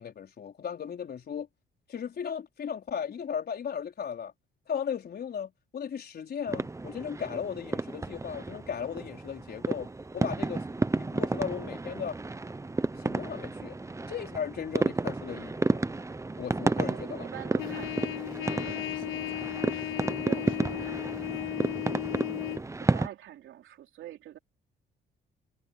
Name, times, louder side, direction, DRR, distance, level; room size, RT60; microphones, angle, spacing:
voice 1, 0.0-1.5 1.9-4.3 4.7-10.6 10.9-12.2 13.0-13.8 14.1-15.8 16.4-17.3, left 7 dB, 55° left, 4.6 m, -36 dB
sound 1, 6.5-23.1, right 3 dB, 15° right, 0.8 m, -32 dB
voice 2, 16.7-21.6 22.8-24.4, right 12 dB, 80° right, 3.4 m, -46 dB
Trumpet, 17.6-22.6, left 17 dB, 90° left, 0.9 m, -35 dB
cardioid pair, 90°, 20 cm